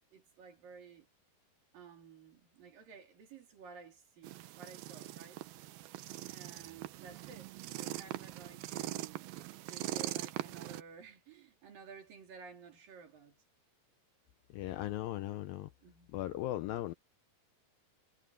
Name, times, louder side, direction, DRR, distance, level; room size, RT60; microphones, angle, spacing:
voice 1, 0.1-1.1 1.7-5.4 6.3-9.3 9.6-13.4 15.8-16.1, right 5 dB, 60° right, 4.9 m, -54 dB
sound 1, 4.2-10.8, right 15 dB, 75° right, 2.5 m, -42 dB
voice 2, 14.5-15.7 16.1-16.9, left 14 dB, 80° left, 2.1 m, -37 dB
omnidirectional pair, 4.7 m